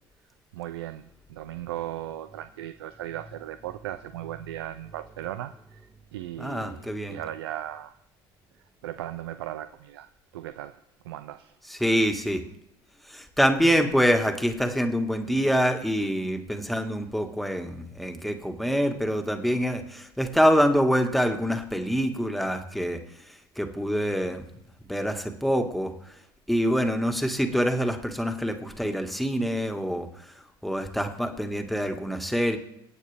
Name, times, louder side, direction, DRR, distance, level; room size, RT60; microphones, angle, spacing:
voice 1, 0.5-5.8 6.1-7.9 8.8-10.1 10.3-10.8 11.1-11.5, right 13 dB, 85° right, 11 dB, 0.5 m, -37 dB
voice 2, 6.4-7.2 11.7-12.4 13.1-23.0 23.6-24.4 24.9-25.9 26.5-30.1 30.6-32.6, equal, ahead, 5 dB, 1.8 m, -25 dB
24.5 x 8.4 x 3.5 m, 0.78 s
hypercardioid pair, 75°, 13 cm